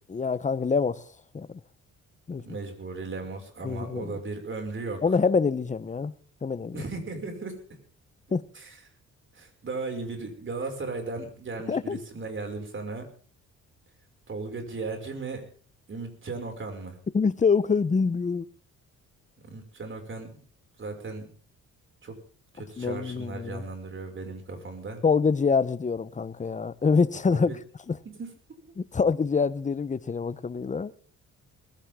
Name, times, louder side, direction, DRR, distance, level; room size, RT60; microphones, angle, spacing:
voice 1, 0.1-1.1 1.3-1.6 2.3-2.4 3.6-4.2 5.0-6.1 6.4-6.8 8.3-8.4 11.7-12.0 17.1-18.5 22.8-23.6 25.0-27.6 27.9-28.0 28.8-30.9, left 5 dB, 25° left, 0.9 m, -25 dB
voice 2, 2.4-5.0 6.7-7.6 8.5-8.8 9.3-13.1 14.3-15.4 15.9-17.0 19.4-20.4 20.8-21.3 22.0-22.2 22.5-25.0 27.3-27.6 28.1-28.3, right 3 dB, 40° right, 6.1 m, -36 dB
21.5 x 16.0 x 3.8 m
cardioid pair, 90°, 30 cm